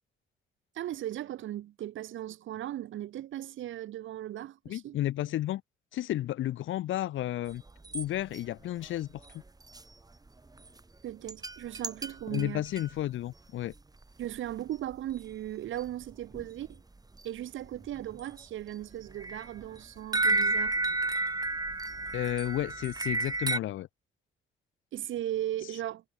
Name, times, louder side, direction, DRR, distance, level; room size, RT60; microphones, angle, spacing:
voice 1, 0.7-5.0 11.0-12.6 14.2-16.8 17.2-20.8 24.9-26.0, right 13 dB, 80° right, 4.6 m, -37 dB
voice 2, 4.6-5.6 5.9-7.6 7.9-9.1 9.3-9.4 12.3-13.7 22.1-23.9, left 14 dB, 80° left, 1.7 m, -32 dB
sound 1, 7.5-8.1 8.3-8.4 8.8-8.9 9.2-9.8 10.3-10.4 10.6-10.8 11.3-12.9 13.7-13.8 14.0-14.2 14.5-14.6 14.9-15.2 15.5-15.6 15.8-16.8 17.2-17.3 17.6-18.4 18.8-23.6, right 3 dB, 20° right, 5.8 m, -32 dB
cardioid pair, 90°, 20 cm